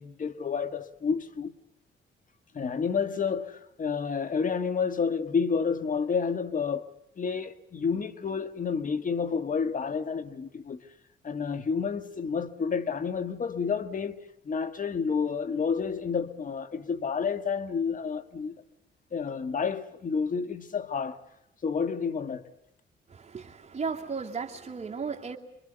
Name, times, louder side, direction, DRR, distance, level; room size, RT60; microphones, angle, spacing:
voice 1, 0.0-1.5 2.5-10.8 11.2-18.6 19.1-21.2 21.6-22.5, left 5 dB, 40° left, 1.5 m, -30 dB
voice 2, 23.1-25.4, right 5 dB, 35° right, 2.6 m, -35 dB
26.0 x 23.5 x 8.0 m
cardioid pair, 90°, 20 cm